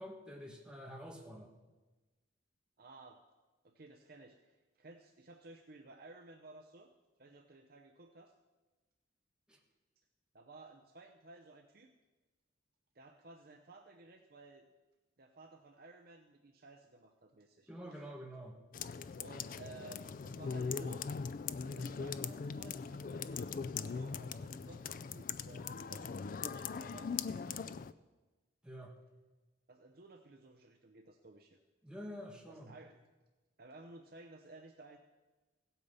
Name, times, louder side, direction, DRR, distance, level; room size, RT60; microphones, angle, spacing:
voice 1, 0.0-1.5 9.5-9.6 17.7-18.5 28.6-28.9 31.8-32.7, equal, 5° right, 0 dB, 1.4 m, -48 dB
voice 2, 2.8-3.2 3.6-6.9 7.2-8.3 10.3-11.9 12.9-14.7 15.2-18.1 19.2-21.1 21.6-27.8 29.7-31.6 32.5-33.0 33.6-35.0, right 2 dB, 50° right, 4 dB, 0.7 m, -56 dB
sound 1, 18.7-27.9, left 5 dB, 45° left, 0.3 m, -40 dB
16.0 x 8.5 x 5.5 m, 1.2 s
head